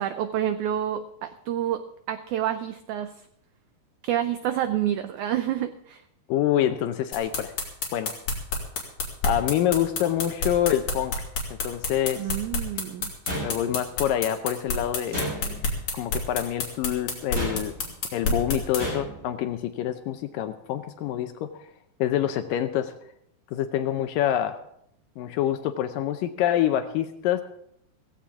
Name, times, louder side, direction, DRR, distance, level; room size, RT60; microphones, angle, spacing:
voice 1, 0.0-3.3 4.0-6.0 12.2-13.1, right 11 dB, 85° right, 10 dB, 1.7 m, -28 dB
voice 2, 6.3-7.5 7.9-8.2 9.2-11.1 11.5-12.2 13.4-15.6 15.9-17.7 18.1-21.6 22.0-22.9 23.5-24.6 25.2-27.4, left 11 dB, 75° left, 9 dB, 2.2 m, -26 dB
sound 1, 7.1-18.8, left 3 dB, 55° left, 4.0 m, -28 dB
sound 2, 13.2-14.0 15.1-15.8 17.3-17.9 18.8-19.3, equal, 20° right, 7.6 m, -33 dB
17.0 x 16.0 x 3.6 m, 0.71 s
omnidirectional pair, 4.2 m